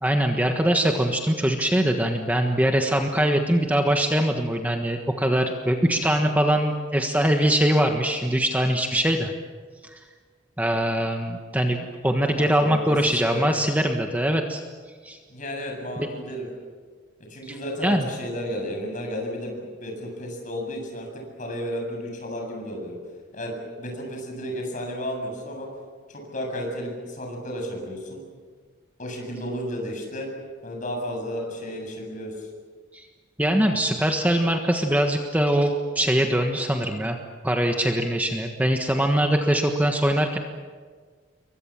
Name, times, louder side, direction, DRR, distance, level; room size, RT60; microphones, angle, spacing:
voice 1, 0.0-9.3 10.6-14.6 15.0-15.2 17.5-18.1 32.9-33.0 33.4-37.2 37.4-40.4, right 1 dB, 10° right, 3 dB, 1.4 m, -22 dB
voice 2, 12.4-13.4 15.3-16.5 17.3-23.0 23.3-25.7 26.1-28.2 29.0-30.3 30.6-32.5, equal, 45° left, 2 dB, 7.7 m, -33 dB
28.5 x 23.5 x 7.5 m, 1.5 s
head